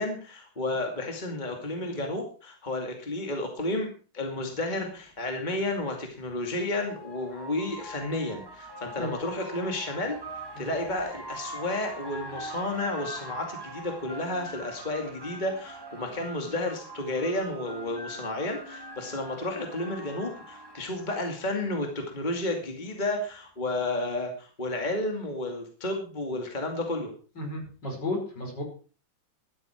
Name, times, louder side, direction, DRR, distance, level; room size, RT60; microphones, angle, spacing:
voice 1, 0.0-3.9 4.1-10.2 10.6-27.1, left 2 dB, 20° left, 3 dB, 2.5 m, -32 dB
sound 1, 6.2-21.8, right 1 dB, 10° right, 1.9 m, -43 dB
voice 2, 27.4-28.6, left 1 dB, 60° left, 2 dB, 5.7 m, -33 dB
15.5 x 13.0 x 4.6 m, 0.38 s
omnidirectional pair, 2.1 m